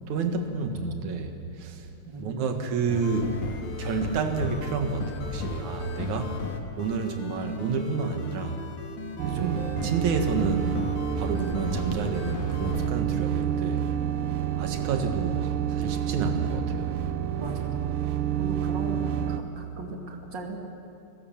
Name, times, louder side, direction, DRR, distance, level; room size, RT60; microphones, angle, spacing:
voice 1, 0.1-1.9 2.2-3.4 3.8-6.4 6.8-8.6 9.2-10.8 11.2-13.9 14.5-16.9, right 4 dB, 65° right, 5 dB, 2.9 m, -30 dB
voice 2, 2.1-2.6 17.4-17.8 18.4-20.6, right 3 dB, 35° right, 2 dB, 2.5 m, -37 dB
sound 1, 2.9-12.9, left 4 dB, 70° left, 2.9 m, -35 dB
sound 2, 9.2-19.4, right 10 dB, 80° right, 2.5 m, -29 dB
29.5 x 16.0 x 7.3 m, 2.6 s
omnidirectional pair, 3.8 m